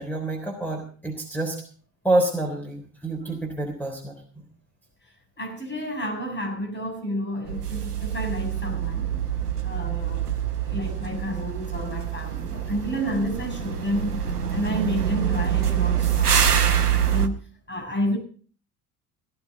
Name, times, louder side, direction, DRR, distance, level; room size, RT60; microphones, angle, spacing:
voice 1, 0.0-1.6 2.0-4.1, right 2 dB, 5° left, 3 dB, 3.5 m, -27 dB
voice 2, 5.4-9.2 9.6-10.2 10.5-17.4 17.7-18.2, equal, 25° left, 3 dB, 7.4 m, -30 dB
sound 1, 7.5-17.3, right 9 dB, 85° right, 0.9 m, -25 dB
18.0 x 12.5 x 4.0 m, 0.43 s
figure-of-eight pair, 65°, 44 cm